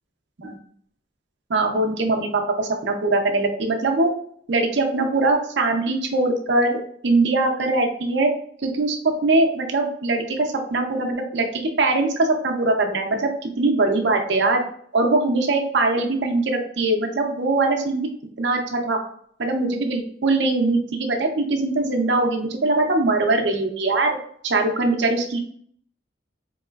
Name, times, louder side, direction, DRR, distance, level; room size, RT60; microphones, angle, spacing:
voice 1, 1.5-4.1 4.5-6.8 7.0-8.3 8.6-14.6 14.9-18.1 18.4-19.0 19.4-24.2 24.4-25.4, right 2 dB, 70° right, 3 dB, 0.7 m, -21 dB
4.1 x 3.0 x 2.3 m, 0.62 s
head